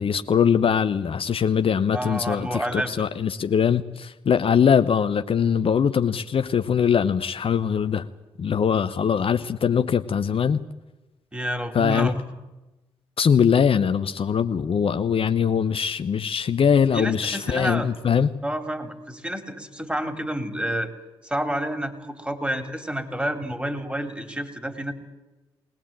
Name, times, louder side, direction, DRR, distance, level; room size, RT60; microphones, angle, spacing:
voice 1, 0.0-8.1 8.4-10.6 11.7-12.1 13.2-18.3, left 7 dB, 50° left, 10 dB, 0.8 m, -22 dB
voice 2, 1.9-2.9 11.3-12.2 16.9-17.9 18.4-20.9 21.2-24.9, equal, 10° right, 8 dB, 3.5 m, -29 dB
21.5 x 18.5 x 8.9 m, 1.1 s
hypercardioid pair, 40°, 12 cm